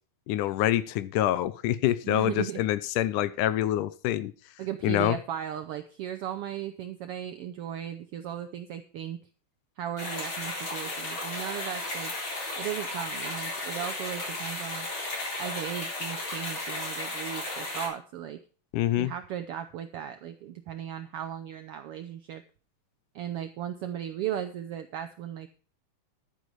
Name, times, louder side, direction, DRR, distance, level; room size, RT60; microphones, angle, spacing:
voice 1, 0.3-4.3 4.8-5.2 18.7-19.1, left 13 dB, 90° left, 16 dB, 2.2 m, -26 dB
voice 2, 2.0-2.6 4.6-9.2 9.8-12.1 12.6-14.9 15.4-18.4 18.9-22.4 23.1-25.5, right 10 dB, 90° right, 9 dB, 1.2 m, -36 dB
sound 1, 10.0-17.9, left 2 dB, 40° left, 4.7 m, -34 dB
11.5 x 9.4 x 4.6 m, 0.39 s
omnidirectional pair, 3.6 m